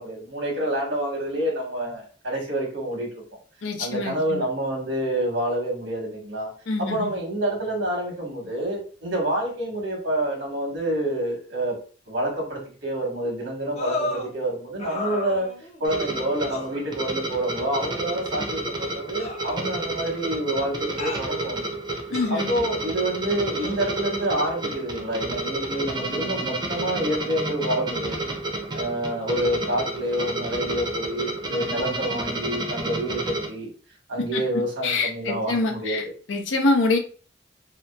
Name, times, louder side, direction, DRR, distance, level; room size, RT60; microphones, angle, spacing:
voice 1, 0.0-3.2 3.8-6.5 6.8-11.7 12.1-15.5 15.8-21.7 22.3-28.2 28.7-33.7 34.1-36.1, right 1 dB, 85° right, -1 dB, 1.2 m, -28 dB
voice 2, 3.6-4.4 6.7-7.1 22.1-22.5 34.3-34.4 34.8-36.0 36.3-37.0, left 3 dB, 90° left, 4 dB, 0.6 m, -25 dB
sound 1, 13.8-14.3 14.8-15.8 16.5-16.7 17.8-17.9 19.2-20.1 21.0-21.3 22.1-22.6 23.6-23.7, left 3 dB, 35° left, 0.5 m, -33 dB
sound 2, 15.8-33.5, right 2 dB, 25° right, 0.5 m, -31 dB
2.8 x 2.3 x 2.2 m, 0.40 s
head